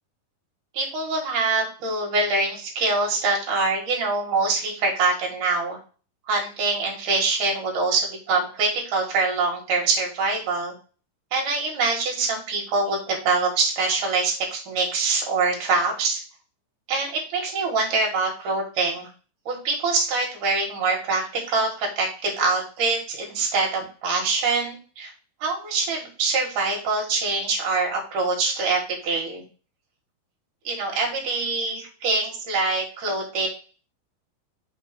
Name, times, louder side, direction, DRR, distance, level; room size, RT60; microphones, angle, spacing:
voice 1, 0.7-5.8 6.3-10.7 11.3-16.2 16.9-19.1 19.5-25.1 25.4-29.4 30.6-33.5, right 3 dB, 60° right, 0 dB, 2.9 m, -24 dB
6.4 x 2.9 x 5.2 m, 0.38 s
omnidirectional pair, 4.5 m